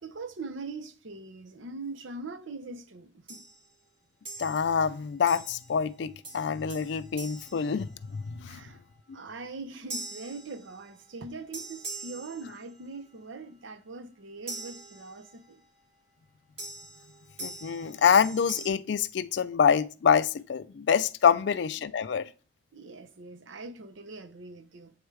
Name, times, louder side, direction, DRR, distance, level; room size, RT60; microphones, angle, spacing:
voice 1, 0.0-3.4 8.5-8.8 9.1-15.6 21.3-21.4 22.7-24.9, right 3 dB, 70° right, 0.7 m, -42 dB
sound 1, 3.3-3.7 4.3-4.8 5.3-5.8 6.2-8.4 9.9-11.1 11.5-13.0 14.5-15.5 16.6-18.7, right 2 dB, 30° right, 1.8 m, -43 dB
voice 2, 4.4-8.6 17.4-22.2, left 7 dB, 60° left, 0.3 m, -26 dB
7.9 x 3.3 x 4.7 m
head